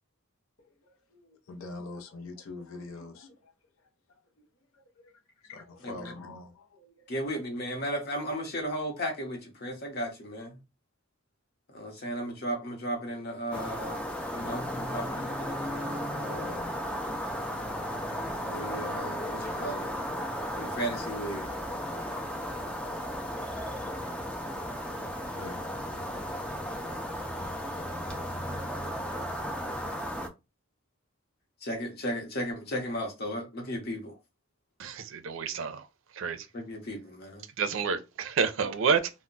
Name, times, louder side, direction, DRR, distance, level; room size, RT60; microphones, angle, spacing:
voice 1, 0.6-3.5 3.8-4.4 4.7-7.3, left 3 dB, 90° left, 0.6 m, -47 dB
voice 2, 7.1-10.6 11.7-14.0 14.3-16.6 18.3-19.9 20.5-21.5 31.6-34.1 36.5-37.4, equal, 50° left, 0.8 m, -35 dB
sound 1, 13.5-30.3, equal, 5° left, 0.3 m, -35 dB
voice 3, 34.8-35.9 36.1-36.5 37.6-39.1, right 6 dB, 70° right, 0.4 m, -29 dB
2.1 x 2.1 x 3.8 m
head